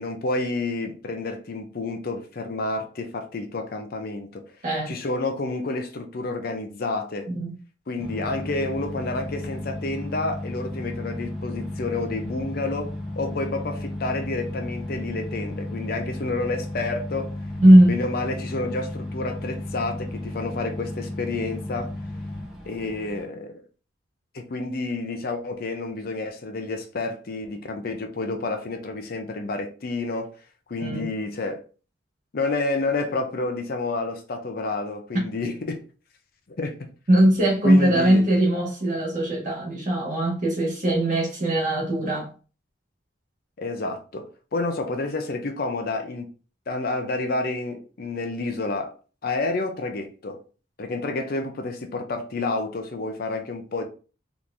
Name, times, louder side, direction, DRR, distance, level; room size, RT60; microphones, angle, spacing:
voice 1, 0.0-4.5 4.9-7.3 7.9-17.3 17.8-21.9 22.6-23.6 24.3-30.3 30.7-31.6 32.3-35.8 36.5-36.9 37.6-38.2 43.6-46.3 46.7-48.9 49.2-50.4 50.8-53.8, left 2 dB, 50° left, 0.5 m, -29 dB
sound 1, 8.0-23.2, left 1 dB, ahead, 0.8 m, -34 dB
voice 2, 17.6-17.9 30.8-31.1 35.1-35.2 37.1-42.3, right 1 dB, 40° right, 1.5 m, -19 dB
3.7 x 3.0 x 2.6 m
head